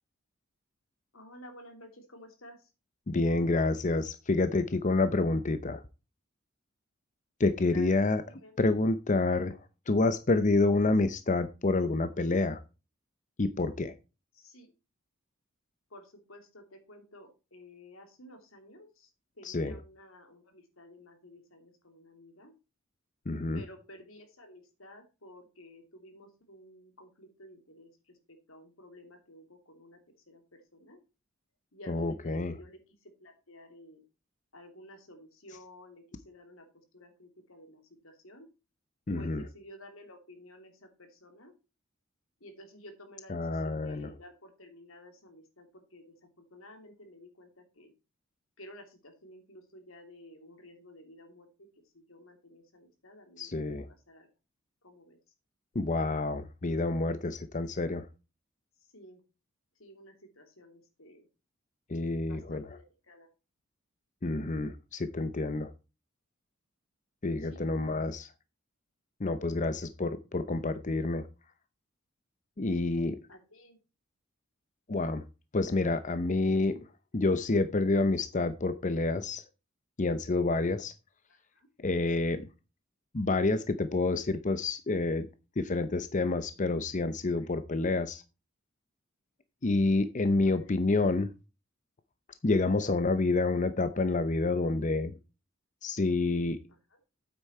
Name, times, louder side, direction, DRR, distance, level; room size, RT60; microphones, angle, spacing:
voice 1, 1.1-2.7 7.7-8.5 14.3-14.7 15.9-19.1 19.4-22.5 23.5-30.0 30.3-31.0 31.7-34.0 34.5-38.5 39.1-41.5 42.4-47.9 48.6-51.5 51.9-53.8 54.1-54.3 54.8-55.2 58.8-59.2 59.8-61.3 62.3-63.3 67.4-67.7 73.3-73.8 81.3-81.7 87.4-87.5 90.4-90.7, left 1 dB, 90° left, 5 dB, 3.1 m, -53 dB
voice 2, 3.1-5.8 7.4-8.2 8.6-9.6 9.9-12.6 13.4-13.9 19.4-19.8 23.3-23.6 31.9-32.5 39.1-39.4 43.3-44.1 53.4-53.9 55.7-58.1 61.9-62.8 64.2-65.7 67.2-68.3 69.2-71.3 72.6-73.2 74.9-75.3 75.5-79.4 80.0-80.9 81.8-82.5 83.1-85.3 85.6-88.2 89.6-91.3 92.4-95.1 95.8-96.6, left 3 dB, 40° left, 11 dB, 0.7 m, -28 dB
9.2 x 8.3 x 4.3 m, 0.30 s
head